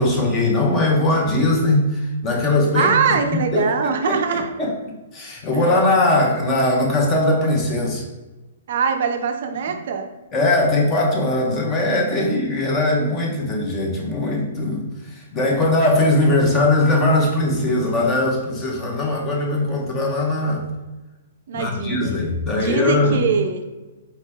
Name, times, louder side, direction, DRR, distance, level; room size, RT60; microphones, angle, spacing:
voice 1, 0.0-2.9 3.3-3.7 4.1-4.7 5.1-8.0 10.3-20.7 21.5-23.2, left 2 dB, 20° left, 0 dB, 0.8 m, -20 dB
voice 2, 2.7-4.5 8.7-10.1 12.2-12.3 21.5-22.2 22.5-23.6, right 6 dB, 60° right, 6 dB, 0.4 m, -22 dB
4.2 x 2.8 x 3.5 m, 1.1 s
hypercardioid pair, 160°, 0 cm